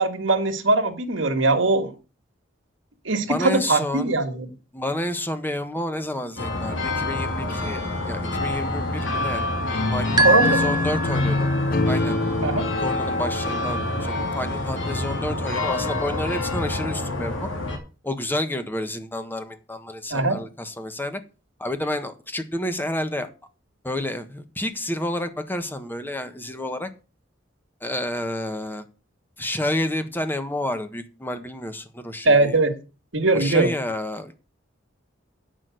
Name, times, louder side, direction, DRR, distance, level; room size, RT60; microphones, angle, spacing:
voice 1, 0.0-1.9 3.1-4.5 10.2-10.7 12.4-12.7 20.1-20.4 32.2-32.7 33.1-33.7, right 3 dB, 70° right, 1.9 m, -21 dB
voice 2, 3.2-4.1 4.7-9.5 9.9-11.5 11.8-12.2 12.8-17.5 18.0-21.2 21.6-23.3 23.8-26.9 27.8-28.8 29.4-32.6 33.3-34.4, left 1 dB, 10° left, 1.4 m, -30 dB
sound 1, 6.4-17.8, left 2 dB, 75° left, 3.3 m, -27 dB
sound 2, 9.7-14.8, left 2 dB, 50° left, 0.7 m, -27 dB
sound 3, 10.2-11.7, right 1 dB, 20° right, 0.7 m, -23 dB
9.0 x 6.2 x 7.7 m
head